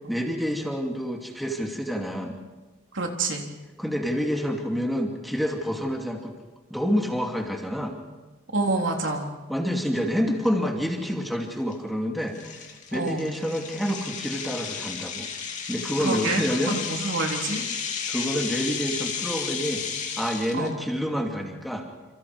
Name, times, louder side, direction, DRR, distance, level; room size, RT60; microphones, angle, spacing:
voice 1, 0.1-2.4 3.8-6.4 6.7-8.0 9.5-15.3 15.7-16.8 18.1-19.8 20.2-21.9, equal, ahead, 1 dB, 2.6 m, -28 dB
voice 2, 2.9-3.4 8.5-9.3 12.9-13.3 16.0-17.6 20.5-20.7, right 2 dB, 70° right, 1 dB, 3.7 m, -27 dB
sound 1, 10.4-10.5 11.1-11.3 11.7-11.8 12.3-20.7, left 6 dB, 40° left, 2.9 m, -33 dB
28.5 x 28.0 x 4.8 m, 1.2 s
head